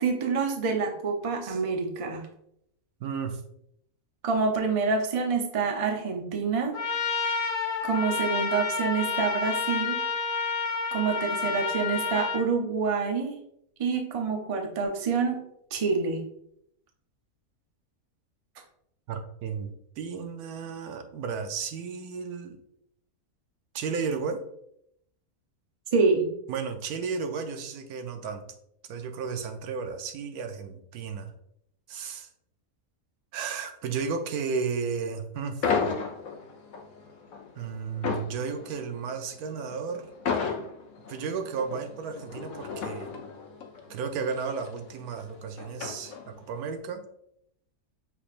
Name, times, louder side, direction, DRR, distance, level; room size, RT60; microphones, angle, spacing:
voice 1, 0.0-2.2 4.2-6.7 7.8-10.0 10.9-13.4 13.8-15.4 15.7-16.2 25.9-26.3, right 4 dB, 45° right, 3 dB, 0.4 m, -27 dB
voice 2, 3.0-3.4 19.1-22.6 23.7-24.4 26.5-28.4 28.9-31.3 31.9-32.3 33.3-35.6 37.6-40.1 41.1-43.2 43.9-47.0, right 5 dB, 85° right, 7 dB, 1.1 m, -33 dB
Trumpet, 6.7-12.4, left 4 dB, 55° left, 0.9 m, -29 dB
sound 1, 35.6-46.6, left 5 dB, 70° left, 1.1 m, -34 dB
6.0 x 3.5 x 2.4 m, 0.73 s
omnidirectional pair, 1.5 m